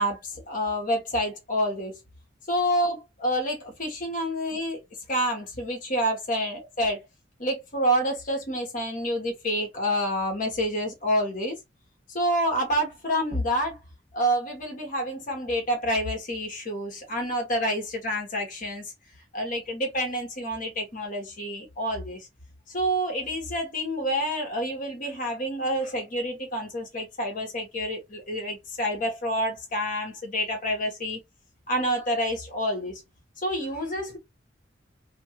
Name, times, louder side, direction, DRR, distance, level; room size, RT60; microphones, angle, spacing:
voice 1, 0.0-2.0 2.5-4.8 5.1-7.0 7.4-11.6 12.1-13.8 14.1-18.8 19.3-22.3 22.7-31.2 31.7-33.0 33.4-34.2, equal, 45° left, 1.3 m, -28 dB
3.0 x 2.6 x 2.9 m
head